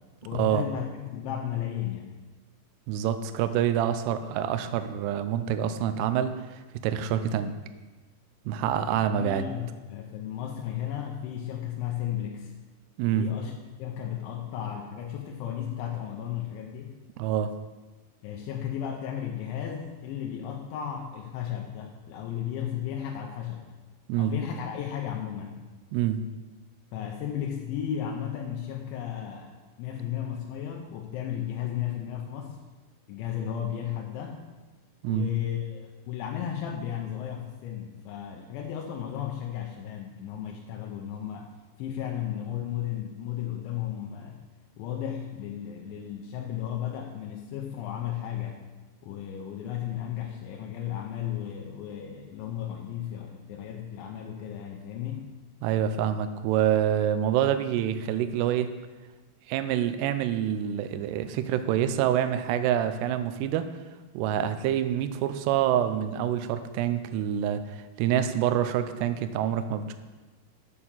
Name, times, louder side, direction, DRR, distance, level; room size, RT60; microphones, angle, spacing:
voice 1, 0.2-2.1 8.9-12.5 13.1-13.5 13.8-16.9 18.2-23.7 24.2-25.7 26.9-32.6 33.1-34.4 35.1-41.5 41.8-44.4 44.8-48.6 49.0-55.3, left 10 dB, 80° left, 0 dB, 3.1 m, -34 dB
voice 2, 2.9-7.5 8.5-9.4 13.0-13.3 17.2-17.5 24.1-24.3 25.9-26.2 35.0-35.3 55.6-58.7 59.5-63.7 64.1-69.9, right 10 dB, 80° right, 10 dB, 2.5 m, -26 dB
8.5 x 6.8 x 7.3 m, 1.2 s
omnidirectional pair, 5.4 m